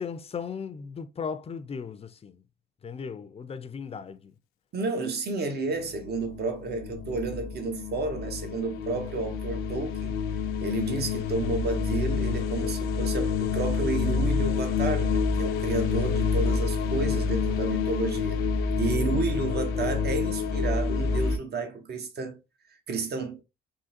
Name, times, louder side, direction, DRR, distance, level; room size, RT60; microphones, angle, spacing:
voice 1, 0.0-2.4 2.8-4.3, left 6 dB, 30° left, 0.5 m, -36 dB
voice 2, 4.7-10.1 10.6-18.4 18.8-22.4 22.9-23.4, right 3 dB, 50° right, 1.1 m, -31 dB
sound 1, 5.8-21.4, left 5 dB, 85° left, 0.6 m, -28 dB
3.7 x 2.8 x 2.7 m
supercardioid pair, 75°, 21 cm